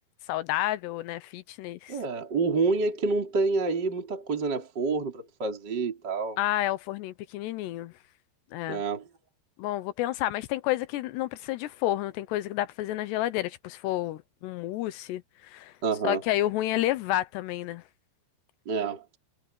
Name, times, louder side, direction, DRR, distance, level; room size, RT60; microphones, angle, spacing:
voice 1, 0.3-2.0 6.4-7.9 8.5-8.8 9.6-15.7 16.0-17.8, left 15 dB, 80° left, 2.6 m, -30 dB
voice 2, 1.9-6.4 8.7-9.0 15.8-16.2 18.7-19.0, right 4 dB, 25° right, 3.4 m, -28 dB
omnidirectional pair, 5.6 m